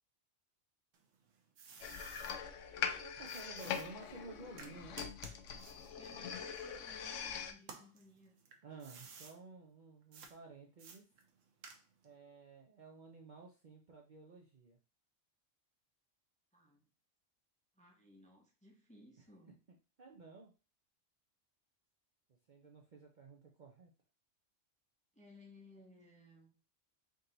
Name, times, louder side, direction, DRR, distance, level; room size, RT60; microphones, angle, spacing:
sound 1, 0.9-2.4 3.3-7.2 7.6-9.4 10.1-10.3 10.8-12.1, right 5 dB, 80° right, 1.1 m, -55 dB
sound 2, 1.8-7.5, left 7 dB, 80° left, 0.9 m, -42 dB
voice 1, 3.0-5.0 8.6-11.0 12.0-14.8 19.2-19.3 20.0-20.5 22.3-23.9, right 3 dB, 50° right, 1 dB, 0.6 m, -54 dB
voice 2, 5.9-8.4 16.5-16.8 17.8-19.6 25.1-26.5, left 1 dB, 10° left, 0 dB, 0.6 m, -61 dB
3.8 x 2.8 x 3.8 m, 0.33 s
omnidirectional pair, 1.3 m